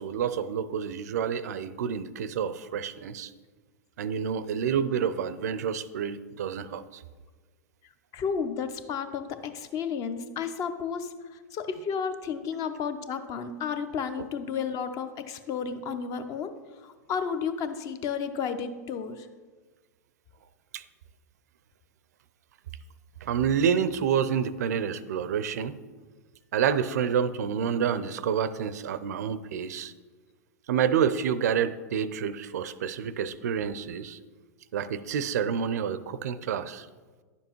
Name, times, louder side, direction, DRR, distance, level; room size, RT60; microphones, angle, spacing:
voice 1, 0.0-3.3 4.0-7.0 20.7-20.8 23.2-25.8 26.5-29.9 30.7-34.2 34.7-36.9, right 7 dB, 70° right, 15 dB, 0.4 m, -28 dB
voice 2, 8.1-19.3, left 6 dB, 40° left, 10 dB, 0.7 m, -32 dB
10.5 x 7.0 x 3.0 m, 1.4 s
hypercardioid pair, 100°, 9 cm